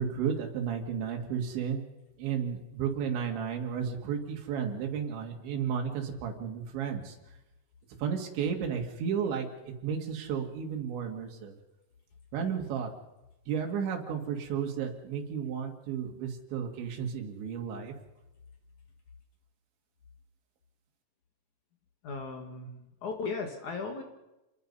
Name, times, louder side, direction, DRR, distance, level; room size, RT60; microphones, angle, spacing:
voice 1, 0.0-1.8 2.2-7.2 8.0-11.5 12.3-12.9 13.5-17.9, right 7 dB, 85° right, 2 dB, 4.6 m, -33 dB
voice 2, 22.0-24.0, left 4 dB, 55° left, 4 dB, 2.7 m, -37 dB
28.0 x 21.0 x 5.5 m, 0.98 s
omnidirectional pair, 5.1 m